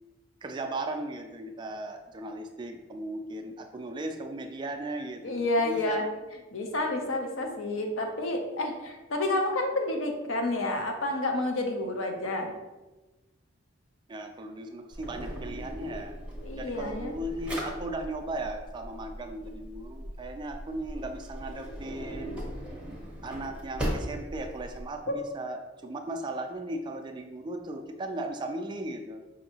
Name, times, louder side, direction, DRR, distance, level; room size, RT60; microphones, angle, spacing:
voice 1, 0.4-6.0 14.1-16.2 16.4-22.4 23.2-29.2, right 1 dB, 25° right, 4 dB, 0.3 m, -37 dB
voice 2, 5.2-6.0 6.5-12.5 16.4-17.1 25.1-25.2, left 2 dB, 80° left, 3 dB, 0.7 m, -29 dB
Drawer open or close, 14.9-24.9, equal, 5° right, 0.7 m, -38 dB
5.5 x 2.6 x 2.8 m, 1.1 s
head